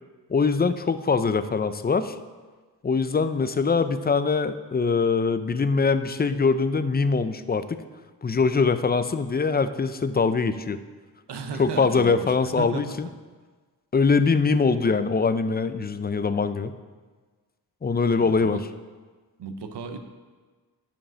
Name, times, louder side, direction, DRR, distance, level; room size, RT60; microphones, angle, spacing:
voice 1, 0.3-2.2 2.8-7.8 8.2-10.8 11.6-13.1 13.9-16.7 17.8-18.7, left 4 dB, 25° left, 12 dB, 0.5 m, -23 dB
voice 2, 11.3-12.8 18.2-18.6 19.4-20.0, right 5 dB, 90° right, 7 dB, 0.9 m, -35 dB
10.0 x 5.2 x 6.2 m, 1.4 s
wide cardioid pair, 90°, 40 cm